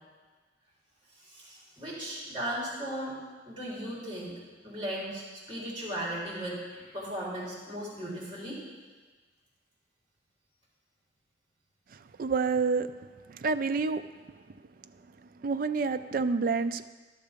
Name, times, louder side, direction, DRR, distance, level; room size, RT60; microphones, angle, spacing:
voice 1, 1.3-3.2 3.5-4.4 4.6-5.2 5.5-8.6, right 1 dB, 25° right, -6 dB, 3.6 m, -36 dB
voice 2, 11.9-12.9 13.3-14.0 15.4-16.9, right 4 dB, 50° right, 11 dB, 0.4 m, -28 dB
12.0 x 6.5 x 5.2 m, 1.4 s
head